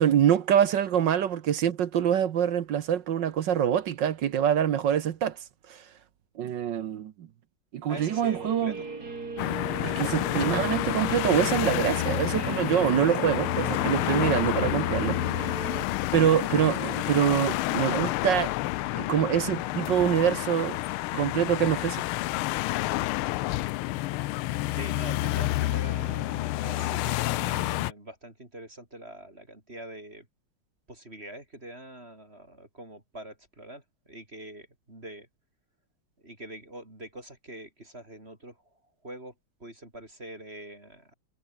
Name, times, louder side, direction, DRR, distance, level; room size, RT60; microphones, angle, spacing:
voice 1, 0.0-5.4 5.7-5.8 6.4-7.3 7.7-8.7 9.8-15.2 16.1-18.5 18.9-20.8 21.1-22.0, right 9 dB, 65° right, 1.5 m, -25 dB
voice 2, 7.9-8.9 16.0-16.2 24.7-30.3 30.9-35.3 36.2-39.3 39.6-41.1, right 1 dB, 25° right, 5.1 m, -44 dB
Guitar, 7.9-15.8, right 3 dB, 45° right, 4.1 m, -38 dB
sound 1, 9.4-27.9, left 18 dB, 85° left, 1.5 m, -29 dB
omnidirectional pair, 2.3 m